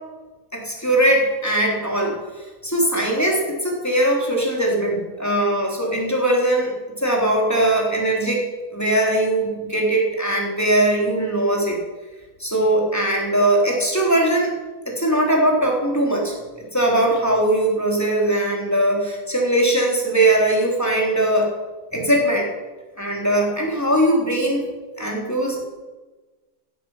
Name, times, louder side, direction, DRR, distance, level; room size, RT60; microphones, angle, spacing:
voice 1, 0.5-2.2 2.6-8.4 8.7-11.8 12.4-14.5 14.9-21.5 21.9-22.5 23.0-24.6 25.0-25.7, right 1 dB, 10° left, -1 dB, 3.8 m, -20 dB
16.0 x 12.5 x 5.9 m, 1.2 s
omnidirectional pair, 1.6 m